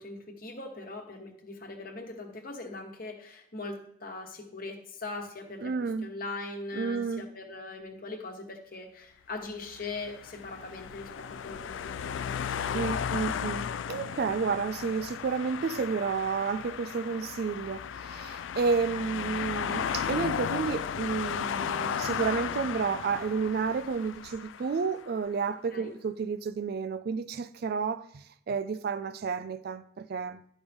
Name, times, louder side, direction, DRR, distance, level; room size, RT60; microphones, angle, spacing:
voice 1, 0.0-5.7 6.0-12.9 25.7-25.9, left 3 dB, 50° left, 1.3 m, -41 dB
voice 2, 5.6-6.1 6.7-7.2 12.7-30.4, right 5 dB, 55° right, 0.3 m, -31 dB
sound 1, 9.6-25.0, left 8 dB, 80° left, 0.4 m, -35 dB
11.0 x 5.2 x 3.5 m
head